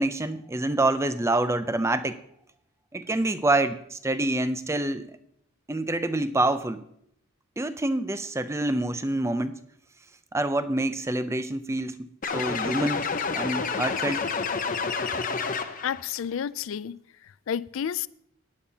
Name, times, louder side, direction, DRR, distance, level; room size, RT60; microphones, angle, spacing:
voice 1, 0.0-2.2 2.9-5.1 5.7-6.8 7.6-9.6 10.3-13.0 13.3-14.3, right 2 dB, 15° right, 0.5 m, -26 dB
sound 1, 12.2-16.0, left 5 dB, 40° left, 0.8 m, -29 dB
voice 2, 15.8-17.0 17.2-18.1, left 8 dB, 70° left, 0.4 m, -31 dB
17.0 x 10.5 x 2.8 m
head